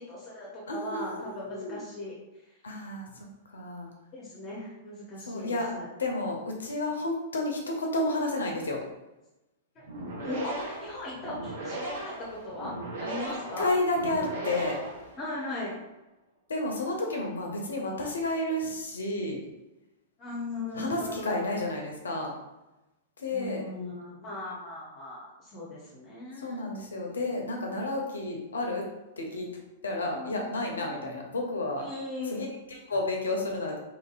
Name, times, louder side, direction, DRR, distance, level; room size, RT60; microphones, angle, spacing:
voice 1, 0.0-2.2 4.1-5.9 9.8-9.9 10.2-13.7 15.2-15.7 20.2-21.6 23.3-26.6 30.1-30.5 30.9-31.2 31.8-32.4, left 2 dB, 35° left, -5 dB, 0.7 m, -38 dB
voice 2, 0.7-1.8 2.6-3.3 3.5-3.9 5.3-5.7 6.0-8.8 13.6-14.8 16.5-19.4 20.7-22.3 23.2-23.6 26.4-28.8 29.2-29.5 29.8-31.9 32.3-33.8, left 2 dB, 75° left, 1 dB, 0.6 m, -31 dB
sound 1, 9.8-15.5, right 2 dB, 65° right, 0.7 m, -37 dB
2.9 x 2.6 x 2.4 m, 1.0 s
figure-of-eight pair, 100°, 0 cm